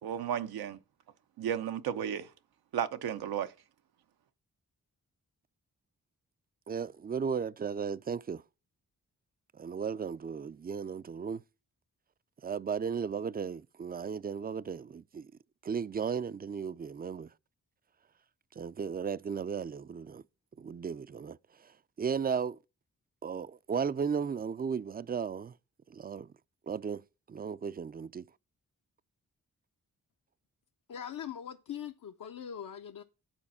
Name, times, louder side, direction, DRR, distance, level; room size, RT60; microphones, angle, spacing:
voice 1, 0.0-0.8 1.4-2.3 2.7-3.5, right 9 dB, 90° right, 0.7 m, -33 dB
voice 2, 6.7-8.4 9.5-11.4 12.4-15.3 15.6-17.3 18.6-20.2 20.6-22.6 23.2-25.6 25.9-26.3 26.7-27.0 27.3-28.3, right 6 dB, 25° right, 0.4 m, -35 dB
voice 3, 30.9-33.0, left 9 dB, 60° left, 0.7 m, -41 dB
9.0 x 4.1 x 7.1 m
cardioid pair, 50°, 36 cm